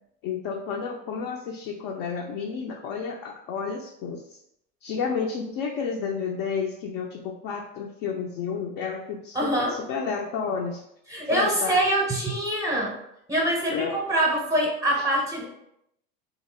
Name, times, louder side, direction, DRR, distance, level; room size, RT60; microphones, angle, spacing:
voice 1, 0.2-4.4 4.8-10.8 11.3-11.8 13.7-14.0 15.0-15.1, left 6 dB, 55° left, 1 dB, 0.5 m, -31 dB
voice 2, 9.3-9.8 11.1-12.9 13.3-15.5, right 1 dB, 10° right, -2 dB, 0.7 m, -24 dB
2.8 x 2.8 x 4.3 m, 0.79 s
supercardioid pair, 155°, 30 cm